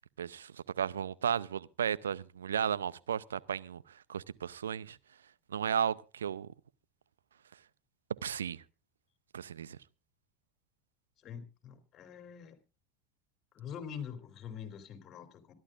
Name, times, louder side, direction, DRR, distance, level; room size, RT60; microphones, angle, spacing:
voice 1, 0.2-3.8 4.1-5.0 5.5-6.5 8.2-8.6 9.3-9.8, right 8 dB, 85° right, 0.6 m, -34 dB
voice 2, 11.2-12.6 13.5-15.5, left 8 dB, 45° left, 3.2 m, -45 dB
25.5 x 11.5 x 2.5 m
hypercardioid pair, 80°, 0 cm